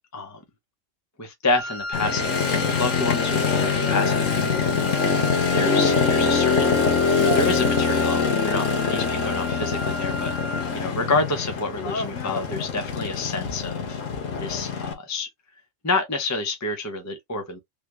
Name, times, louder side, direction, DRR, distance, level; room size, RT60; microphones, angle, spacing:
voice 1, 1.2-5.0 5.5-6.8 7.2-13.8 14.4-15.3 15.8-17.6, left 3 dB, 20° left, 0.5 m, -28 dB
Wind instrument woodwind instrument, 1.5-10.8, left 1 dB, 40° left, 1.1 m, -33 dB
Motorcycle, 1.9-14.9, left 5 dB, 80° left, 1.3 m, -24 dB
3.5 x 2.2 x 2.9 m
omnidirectional pair, 1.3 m